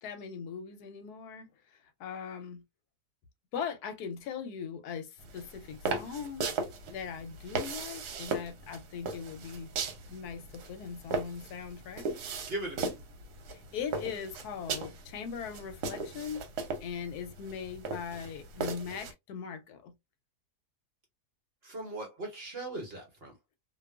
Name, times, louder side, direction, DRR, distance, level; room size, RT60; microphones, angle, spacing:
voice 1, 0.0-2.6 3.5-6.5 6.9-9.7 10.1-12.1 13.5-16.4 16.8-19.9, left 7 dB, 80° left, 1.1 m, -40 dB
sound 1, 5.2-19.1, right 4 dB, 80° right, 1.2 m, -38 dB
voice 2, 12.5-12.9 21.6-23.3, right 2 dB, 45° right, 1.0 m, -39 dB
2.6 x 2.3 x 2.2 m
omnidirectional pair, 1.7 m